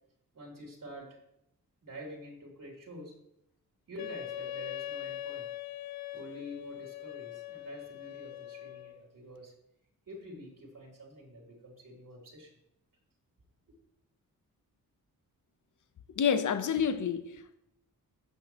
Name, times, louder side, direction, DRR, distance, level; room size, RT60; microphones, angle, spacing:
voice 1, 0.3-1.2 1.8-3.1 3.9-5.5 6.1-9.5 10.1-12.5, equal, 60° right, 3.5 m, -47 dB
Wind instrument woodwind instrument, 4.0-9.0, left 12 dB, 80° left, 0.6 m, -41 dB
voice 2, 16.2-17.5, left 7 dB, 55° left, 0.8 m, -29 dB
17.0 x 5.8 x 3.1 m
cardioid pair, 65°, 36 cm